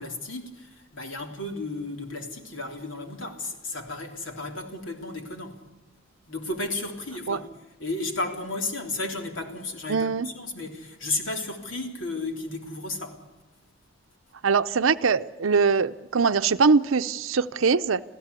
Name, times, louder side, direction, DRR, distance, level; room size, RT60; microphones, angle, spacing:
voice 1, 0.0-5.6 6.3-7.5 7.8-13.2, left 2 dB, 70° left, 3.5 m, -33 dB
voice 2, 9.9-10.3 14.4-18.0, right 5 dB, 85° right, 0.6 m, -22 dB
26.5 x 16.0 x 8.3 m
head